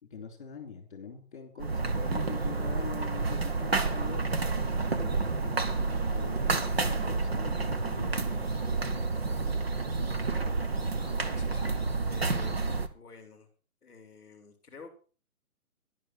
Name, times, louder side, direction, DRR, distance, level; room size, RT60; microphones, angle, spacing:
voice 1, 0.0-4.3 4.9-9.0, left 6 dB, 35° left, 5 dB, 3.2 m, -44 dB
sound 1, 1.6-12.9, right 3 dB, 45° right, 1.0 m, -30 dB
voice 2, 10.9-12.7 12.9-13.5 13.8-14.9, left 4 dB, 5° left, -15 dB, 1.6 m, -50 dB
11.5 x 11.0 x 4.3 m, 0.37 s
hypercardioid pair, 180°, 44 cm